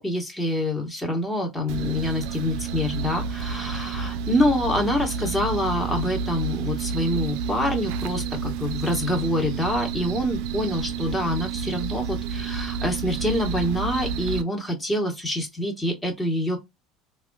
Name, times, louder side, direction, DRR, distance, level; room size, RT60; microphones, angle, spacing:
voice 1, 0.0-16.6, left 1 dB, 10° left, 1.2 m, -26 dB
sound 1, 1.7-14.4, right 6 dB, 75° right, 0.3 m, -30 dB
3.5 x 2.4 x 2.3 m
supercardioid pair, 100°, 0 cm